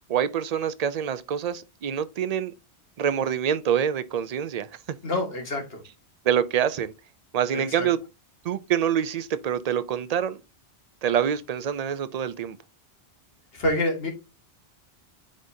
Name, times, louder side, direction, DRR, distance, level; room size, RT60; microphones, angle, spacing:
voice 1, 0.1-2.5 3.0-4.7 6.2-6.9 7.3-8.0 8.4-10.4 11.0-12.6, right 9 dB, 55° right, 0.4 m, -26 dB
voice 2, 5.0-5.8 7.5-7.9 13.5-14.1, left 1 dB, 60° left, 1.8 m, -27 dB
9.6 x 4.0 x 2.7 m
omnidirectional pair, 1.2 m